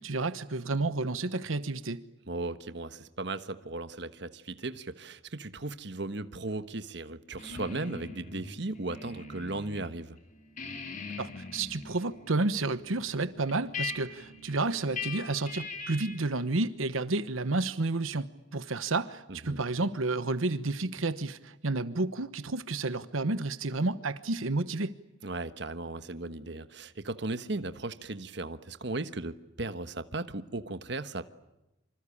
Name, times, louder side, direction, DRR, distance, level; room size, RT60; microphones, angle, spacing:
voice 1, 0.0-2.0 11.2-24.9, right 3 dB, 85° right, 13 dB, 1.1 m, -31 dB
voice 2, 2.3-10.2 19.3-19.6 25.2-31.2, right 2 dB, 55° right, 11 dB, 1.3 m, -36 dB
sound 1, 7.4-9.9 10.2-16.3, left 4 dB, 40° left, 3.5 m, -42 dB
26.5 x 26.0 x 8.6 m, 0.93 s
head